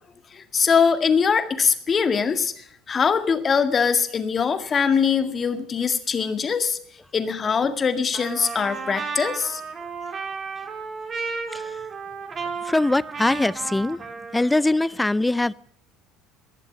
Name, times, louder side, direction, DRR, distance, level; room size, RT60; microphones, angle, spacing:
voice 1, 0.3-6.8 7.1-9.6, left 6 dB, 35° left, 9 dB, 1.9 m, -22 dB
Trumpet, 8.1-14.8, right 5 dB, 35° right, 3.1 m, -33 dB
voice 2, 12.6-14.0 14.3-15.5, left 2 dB, 10° left, 21 dB, 0.5 m, -22 dB
20.5 x 7.3 x 6.8 m, 0.65 s
supercardioid pair, 85°, 0 cm